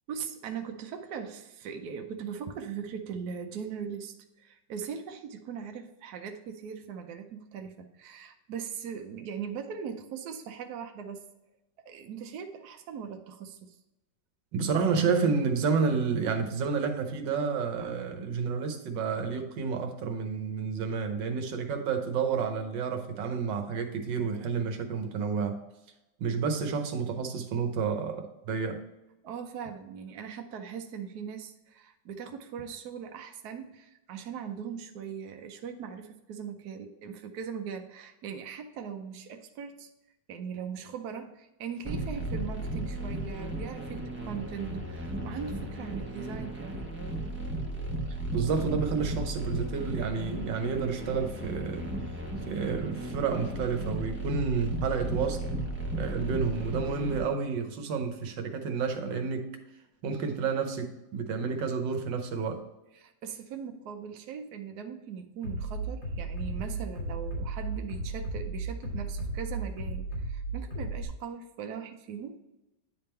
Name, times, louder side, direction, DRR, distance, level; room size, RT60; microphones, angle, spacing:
voice 1, 0.1-11.3 11.8-13.8 29.2-39.9 40.3-46.9 63.0-72.4, right 7 dB, 70° right, 5 dB, 1.1 m, -40 dB
voice 2, 14.5-25.6 26.2-28.8 48.3-51.9 52.5-55.4 55.9-59.5 60.0-62.6, right 5 dB, 85° right, 6 dB, 1.6 m, -30 dB
sound 1, 41.8-57.2, right 1 dB, 10° right, 0.8 m, -35 dB
Bass drum, 65.4-71.0, right 2 dB, 75° left, 2.7 m, -34 dB
9.3 x 3.5 x 4.3 m, 0.97 s
omnidirectional pair, 1.9 m